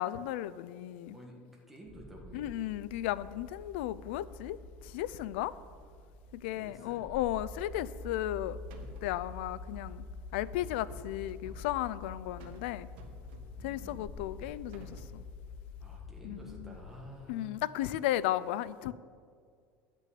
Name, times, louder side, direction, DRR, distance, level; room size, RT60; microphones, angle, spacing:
voice 1, 0.0-1.2 2.3-4.6 4.9-5.5 6.3-8.6 9.0-10.1 10.3-12.9 13.6-15.2 16.2-16.8 17.3-18.9, left 14 dB, 85° left, 17 dB, 0.4 m, -35 dB
voice 2, 1.7-2.5 6.4-7.1 13.4-14.1 15.8-17.6, equal, 5° right, -2 dB, 1.7 m, -50 dB
sound 1, 1.8-16.7, left 3 dB, 15° left, 2.9 m, -47 dB
sound 2, 8.0-8.4 8.7-9.2 10.7-11.6 12.4-12.7 13.0-13.7 14.4-15.2, right 3 dB, 80° right, 1.3 m, -54 dB
10.5 x 6.1 x 8.4 m, 2.2 s
cardioid pair, 170°, 6 cm